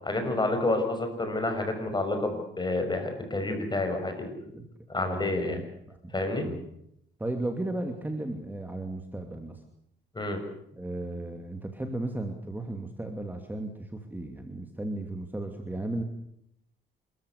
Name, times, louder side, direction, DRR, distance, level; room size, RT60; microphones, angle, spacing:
voice 1, 0.0-4.4 4.9-5.6 6.1-6.5 10.1-10.4, left 2 dB, 20° left, 6 dB, 6.4 m, -29 dB
voice 2, 4.5-6.1 6.4-6.7 7.2-9.6 10.7-16.0, right 2 dB, 10° right, 5 dB, 2.6 m, -35 dB
27.5 x 14.5 x 8.4 m, 0.75 s
cardioid pair, 90°, 20 cm